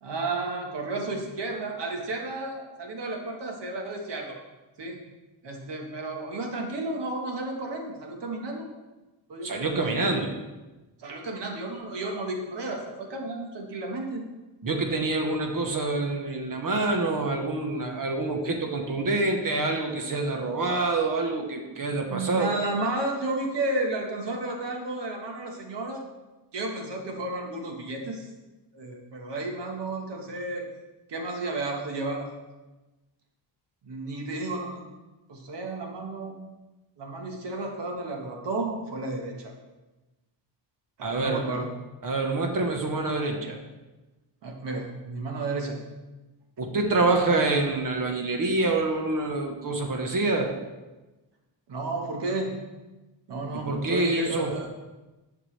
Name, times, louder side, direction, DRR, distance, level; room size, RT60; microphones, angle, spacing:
voice 1, 0.0-4.4 4.8-5.0 5.4-8.7 9.3-9.9 11.0-14.2 22.0-26.0 26.5-28.3 28.7-30.6 31.1-32.3 33.8-34.8 35.3-36.4 37.0-39.5 41.0-41.7 44.4-45.8 51.7-52.6 53.3-54.7, right 2 dB, 65° right, 1 dB, 1.6 m, -32 dB
voice 2, 9.4-10.3 14.6-22.5 41.0-41.6 42.0-43.6 46.6-50.5 53.5-54.5, right 2 dB, 45° right, 3 dB, 1.2 m, -26 dB
11.0 x 6.0 x 3.3 m, 1.1 s
wide cardioid pair, 150°, 44 cm